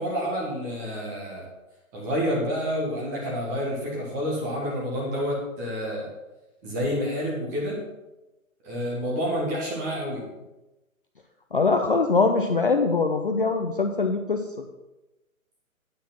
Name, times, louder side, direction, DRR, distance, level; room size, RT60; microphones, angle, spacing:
voice 1, 0.0-1.5 1.9-6.1 6.6-7.8 8.6-10.2, equal, 15° right, -3 dB, 1.4 m, -29 dB
voice 2, 11.5-14.4, left 4 dB, 40° left, 4 dB, 0.5 m, -22 dB
9.3 x 4.9 x 5.9 m, 1.0 s
hypercardioid pair, 170°, 42 cm